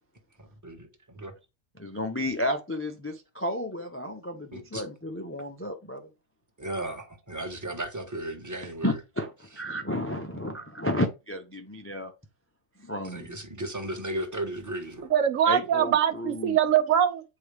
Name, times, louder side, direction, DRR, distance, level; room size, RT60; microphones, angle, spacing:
voice 1, 0.4-1.3 4.5-4.8 6.6-9.0 13.0-15.1, right 1 dB, 15° right, 1.1 m, -35 dB
voice 2, 1.8-6.1 8.6-12.1 12.8-13.4 15.5-16.6, left 1 dB, 20° left, 0.3 m, -32 dB
voice 3, 15.1-17.2, right 9 dB, 70° right, 1.0 m, -23 dB
8.5 x 4.6 x 3.4 m
omnidirectional pair, 1.4 m